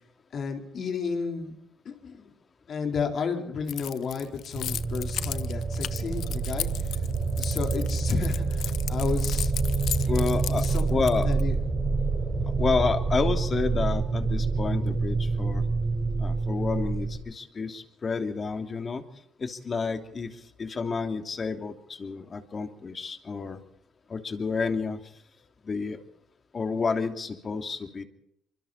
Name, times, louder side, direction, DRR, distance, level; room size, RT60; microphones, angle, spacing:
voice 1, 0.3-1.5 1.8-2.3 2.7-7.0 7.4-9.5 10.5-10.9 11.2-11.5, left 5 dB, 55° left, 3 dB, 4.3 m, -32 dB
Keys jangling, 3.7-11.4, left 11 dB, 70° left, 0.8 m, -36 dB
sound 1, 4.5-17.2, right 4 dB, 40° right, 7.6 m, -27 dB
voice 2, 10.1-11.3 12.6-15.6 16.2-19.0 19.4-20.3 20.6-23.6 24.1-25.0 25.6-26.0 26.5-28.0, left 4 dB, 35° left, 6 dB, 3.0 m, -30 dB
25.0 x 24.5 x 4.4 m, 0.75 s
cardioid pair, 85°, 0 cm